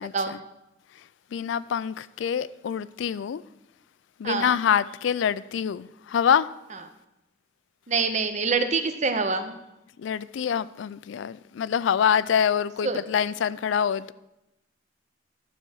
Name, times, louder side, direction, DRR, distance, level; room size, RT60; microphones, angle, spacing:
voice 1, 1.3-3.4 4.2-6.5 10.0-14.1, left 8 dB, 70° left, 0.3 m, -25 dB
voice 2, 4.2-4.6 6.7-6.8 7.9-9.5 12.8-13.0, right 4 dB, 35° right, 0.7 m, -25 dB
11.5 x 4.3 x 6.4 m
head